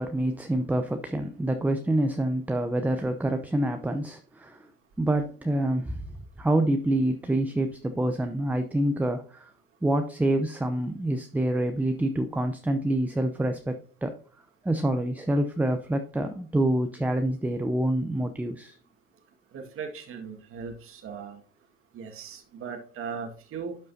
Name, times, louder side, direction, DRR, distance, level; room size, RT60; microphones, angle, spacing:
voice 1, 0.0-4.7 5.0-6.0 6.4-9.5 9.8-13.8 14.0-14.1 14.6-18.7, right 1 dB, 5° right, 7 dB, 0.6 m, -26 dB
voice 2, 19.5-21.4 21.9-23.8, right 6 dB, 45° right, 3 dB, 1.9 m, -38 dB
12.0 x 5.4 x 2.7 m, 0.42 s
hypercardioid pair, 85°, 29 cm